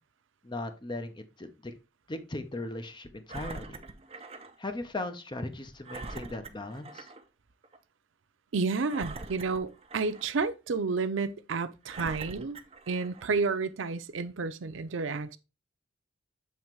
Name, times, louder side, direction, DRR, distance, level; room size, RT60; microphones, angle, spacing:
voice 1, 0.4-1.7 2.1-3.8 4.6-7.1, left 2 dB, 25° left, 0.8 m, -38 dB
Engine, 3.3-4.6 5.0-5.1 5.8-7.2 7.6-7.8 8.9-10.4 11.0-11.1 11.8-13.3 14.0-14.1, right 3 dB, 30° right, 0.7 m, -43 dB
voice 2, 8.5-12.6 12.9-15.4, right 4 dB, 75° right, 0.6 m, -31 dB
7.5 x 3.2 x 4.6 m
head